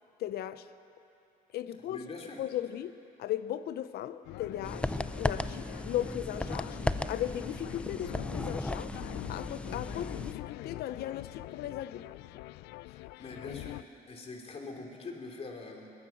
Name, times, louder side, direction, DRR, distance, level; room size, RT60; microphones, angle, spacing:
voice 1, 0.2-0.7 1.5-2.0 2.4-9.0 9.3-12.1, left 12 dB, 70° left, 0.8 m, -37 dB
voice 2, 1.9-2.4 12.9-15.9, left 3 dB, 35° left, 3.2 m, -44 dB
sound 1, 4.2-13.8, left 18 dB, 90° left, 0.4 m, -44 dB
sound 2, 4.6-10.3, left 1 dB, 5° left, 0.5 m, -35 dB
21.0 x 19.5 x 7.2 m
cardioid pair, 110°, 17 cm